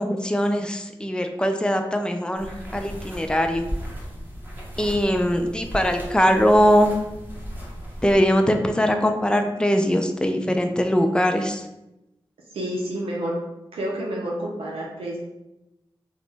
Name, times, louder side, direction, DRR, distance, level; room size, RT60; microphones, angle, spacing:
voice 1, 0.0-3.7 4.8-6.9 8.0-11.7, equal, 10° left, 5 dB, 0.4 m, -21 dB
sound 1, 2.4-8.2, equal, 20° right, 1.0 m, -36 dB
voice 2, 12.5-13.4 13.7-15.2, right 1 dB, 90° right, -3 dB, 0.5 m, -29 dB
2.9 x 2.1 x 3.2 m, 0.92 s
cardioid pair, 45°, 9 cm